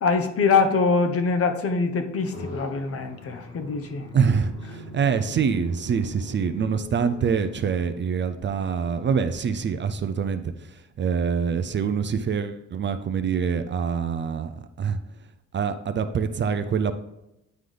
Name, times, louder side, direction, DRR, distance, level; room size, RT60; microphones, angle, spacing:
voice 1, 0.0-4.1, left 4 dB, 50° left, 6 dB, 0.9 m, -23 dB
sound 1, 2.3-10.0, left 3 dB, 85° left, 2.4 m, -43 dB
voice 2, 4.1-14.5 14.8-15.0 15.5-16.9, right 6 dB, 40° right, 9 dB, 0.5 m, -25 dB
9.3 x 3.8 x 3.3 m, 0.89 s
cardioid pair, 90°, 30 cm